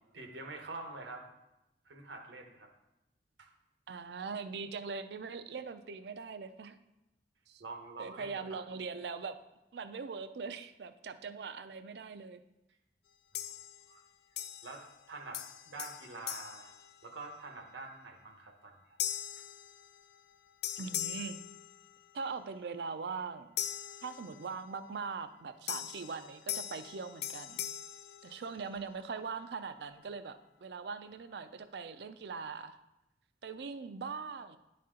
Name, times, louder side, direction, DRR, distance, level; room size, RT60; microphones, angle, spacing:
voice 1, 0.1-1.3 1.8-2.7 3.4-3.5 7.6-8.6 13.9-14.0 14.6-16.7 17.0-18.7 19.4-19.5, right 3 dB, 90° right, 4 dB, 1.0 m, -46 dB
voice 2, 3.9-6.8 7.5-7.6 8.0-9.4 9.7-12.4 20.8-21.4 22.1-23.5 24.0-27.6 28.2-32.8 33.4-34.6, right 5 dB, 65° right, 11 dB, 0.4 m, -41 dB
sound 1, 13.3-14.0 14.4-15.1 15.3-17.5 18.0-18.3 19.0-20.3 20.6-22.3 23.6-24.7 25.7-28.9, left 11 dB, 60° left, 0.3 m, -41 dB
10.5 x 4.2 x 3.7 m, 0.94 s
head